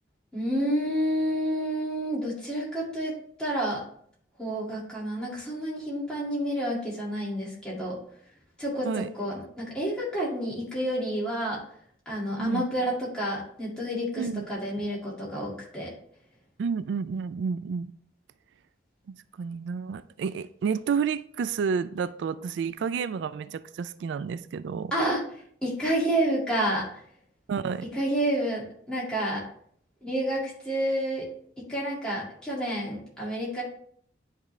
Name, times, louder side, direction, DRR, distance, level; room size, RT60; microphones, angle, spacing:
voice 1, 0.3-3.1 3.4-3.8 4.4-8.0 8.6-11.6 12.1-15.9 24.9-25.2 25.6-26.8 27.9-29.4 30.0-31.3 31.7-33.6, right 1 dB, 5° left, 2.1 m, -29 dB
voice 2, 16.6-17.9 19.1-24.9 27.5-27.9, right 6 dB, 85° right, 0.3 m, -30 dB
10.0 x 3.7 x 3.1 m
head